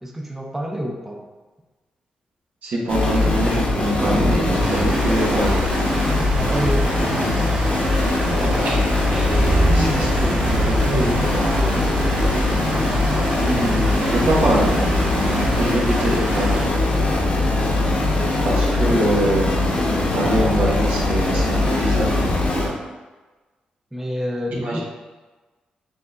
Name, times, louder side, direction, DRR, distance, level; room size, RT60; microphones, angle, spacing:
voice 1, 0.0-1.3 6.1-7.3 23.9-24.8, equal, 10° right, -1 dB, 0.7 m, -28 dB
voice 2, 2.6-5.6 8.4-11.8 13.4-14.7 15.6-16.6 18.4-19.5 20.1-22.3 24.6-24.8, right 1 dB, 75° right, -3 dB, 1.1 m, -24 dB
sound 1, 2.9-22.7, left 2 dB, 50° left, 1.1 m, -21 dB
sound 2, 4.0-16.6, right 2 dB, 25° right, 1.2 m, -28 dB
sound 3, 4.6-16.7, right 2 dB, 50° right, 0.8 m, -31 dB
6.7 x 2.7 x 2.5 m, 1.3 s
cardioid pair, 70°, 3 cm